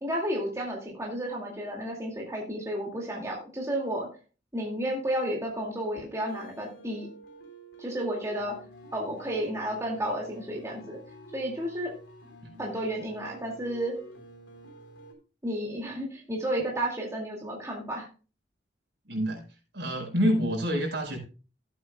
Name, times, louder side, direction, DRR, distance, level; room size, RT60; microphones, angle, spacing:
voice 1, 0.0-4.1 4.5-7.1 7.8-8.6 8.9-11.0 11.3-11.9 12.6-14.0 15.4-18.1, right 1 dB, 15° right, -2 dB, 2.2 m, -32 dB
sound 1, 6.2-15.1, right 1 dB, 85° left, 3.8 m, -49 dB
voice 2, 19.1-19.4 19.7-21.2, equal, 65° right, 1 dB, 5.0 m, -27 dB
15.5 x 8.7 x 2.3 m, 0.34 s
head